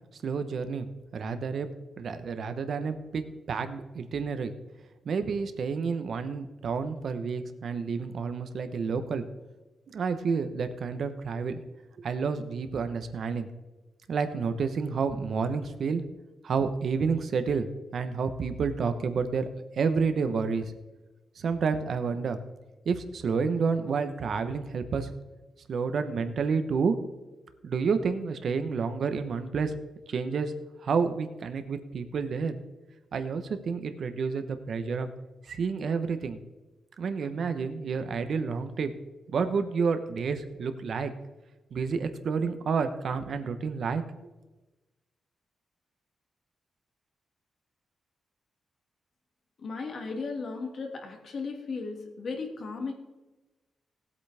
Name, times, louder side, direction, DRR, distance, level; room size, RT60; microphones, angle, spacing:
voice 1, 0.2-0.9 1.1-1.7 2.0-4.5 5.0-9.2 9.9-11.6 12.0-13.5 14.1-16.0 16.4-17.7 17.9-19.5 19.7-20.7 21.4-22.4 22.8-25.1 25.7-27.0 27.6-29.7 30.1-30.5 30.8-32.6 33.1-35.1 35.5-36.4 37.0-38.9 39.3-41.1 41.7-44.0, right 5 dB, 55° right, 9 dB, 1.0 m, -29 dB
voice 2, 49.6-52.9, left 4 dB, 50° left, 2 dB, 2.2 m, -35 dB
18.0 x 8.4 x 3.5 m, 1.1 s
wide cardioid pair, 145°, 0 cm